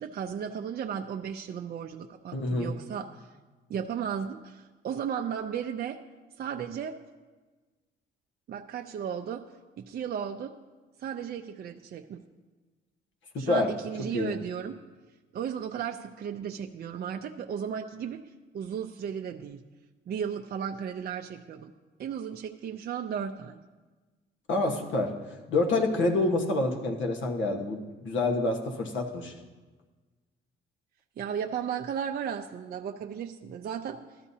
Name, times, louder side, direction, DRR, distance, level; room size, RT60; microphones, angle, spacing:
voice 1, 0.0-3.3 3.7-6.0 6.4-6.9 8.5-9.4 9.8-10.5 11.0-12.2 13.4-14.8 15.3-18.2 18.5-19.6 20.1-21.7 22.0-23.6 31.2-34.0, right 8 dB, 50° right, 4 dB, 0.5 m, -35 dB
voice 2, 2.3-2.7 13.3-13.7 14.1-14.4 24.5-25.1 25.5-29.3, left 2 dB, 75° left, 2 dB, 1.3 m, -27 dB
12.5 x 12.5 x 2.8 m, 1.3 s
cardioid pair, 90°, 20 cm